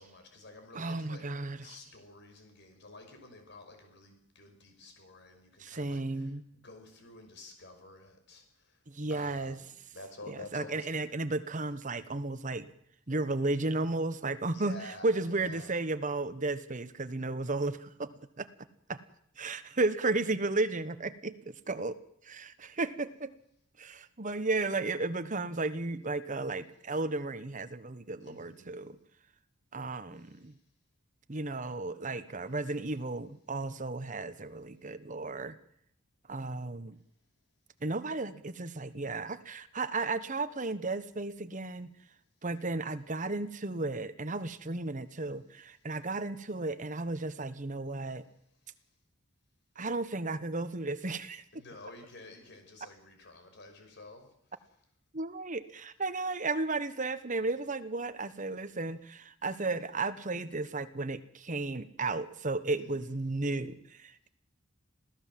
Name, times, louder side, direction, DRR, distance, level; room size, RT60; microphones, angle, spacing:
voice 1, 0.0-1.3 1.6-8.8 9.1-11.0 14.5-15.7 28.2-28.7 30.1-30.5 48.0-48.1 51.5-54.3 62.8-63.2, left 2 dB, 55° left, 5 dB, 5.8 m, -51 dB
voice 2, 0.7-1.7 5.6-6.5 8.9-9.6 10.3-12.7 13.1-18.5 18.9-19.0 19.4-22.0 22.2-23.3 23.8-29.0 29.7-30.5 31.3-35.6 36.3-37.0 37.8-41.9 42.4-48.2 49.8-51.4 55.1-64.3, right 3 dB, 40° right, 12 dB, 1.2 m, -34 dB
26.5 x 16.5 x 7.6 m, 0.72 s
head